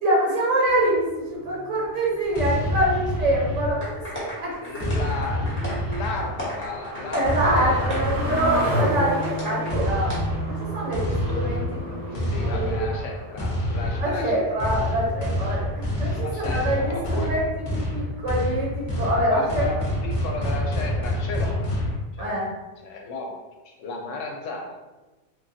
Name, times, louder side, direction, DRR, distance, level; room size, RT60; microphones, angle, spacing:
voice 1, 0.0-4.5 7.1-10.1 10.4-12.9 14.0-17.4 17.7-19.6 22.2-22.5, right 1 dB, 80° right, -5 dB, 1.1 m, -25 dB
sound 1, 0.7-14.8 15.2-15.3 15.6-15.7, equal, 55° right, 0.9 m, -34 dB
sound 2, 2.3-4.1 4.8-6.5 7.2-8.9 9.7-22.0, left 1 dB, 40° left, 0.5 m, -27 dB
sound 3, 3.8-9.7 10.1-10.2, left 1 dB, 10° left, 0.8 m, -35 dB
voice 2, 4.6-7.9 8.1-8.9 11.3-14.7 16.1-17.4 19.3-21.7 22.1-22.4 22.8-24.8, left 2 dB, 85° left, 1 dB, 0.9 m, -35 dB
3.1 x 2.2 x 2.6 m, 1.1 s
omnidirectional pair, 1.2 m